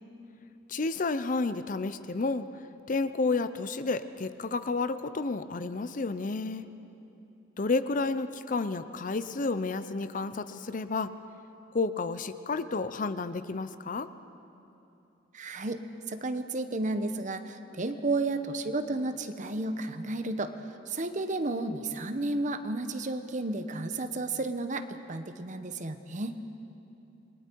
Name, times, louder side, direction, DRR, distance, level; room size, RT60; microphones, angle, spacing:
voice 1, 0.7-2.5 2.9-6.7 7.6-11.1 11.7-14.1, left 3 dB, 45° left, 12 dB, 0.6 m, -31 dB
voice 2, 15.3-15.8 16.1-20.5 20.9-26.4, right 2 dB, 45° right, 9 dB, 0.9 m, -32 dB
28.0 x 21.0 x 4.6 m, 2.9 s
head